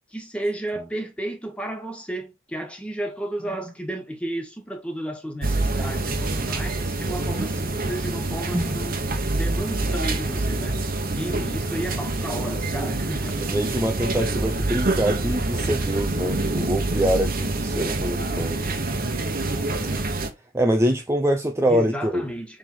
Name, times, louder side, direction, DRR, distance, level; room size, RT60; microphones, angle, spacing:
voice 1, 0.1-9.0 9.4-10.8 11.1-13.5 15.7-15.8 21.7-22.6, right 1 dB, 5° left, 1.5 m, -32 dB
sound 1, 5.4-20.3, right 2 dB, 50° right, 1.1 m, -26 dB
voice 2, 13.3-18.6 19.8-20.0 20.5-22.3, equal, 15° right, 0.6 m, -25 dB
7.2 x 3.6 x 4.0 m
head